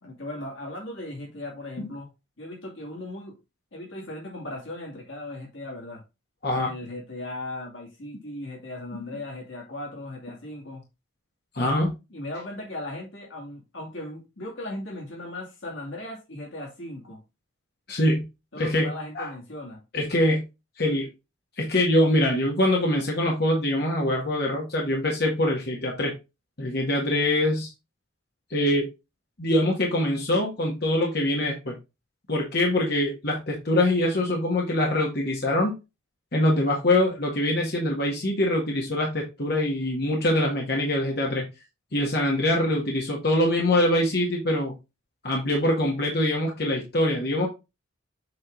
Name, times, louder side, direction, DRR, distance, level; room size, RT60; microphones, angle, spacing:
voice 1, 0.0-2.1 2.4-3.4 3.7-6.0 6.6-10.8 12.1-17.2 18.5-19.8, left 1 dB, 80° left, 2.5 m, -37 dB
voice 2, 11.5-11.9 17.9-18.3 18.6-19.3 19.9-20.4 20.8-21.1 21.6-26.1 26.6-27.7 28.5-28.9 29.4-31.8 32.3-35.7 36.3-41.4 41.9-44.7 45.2-47.5, left 1 dB, 55° left, 1.6 m, -24 dB
7.6 x 3.8 x 3.8 m
head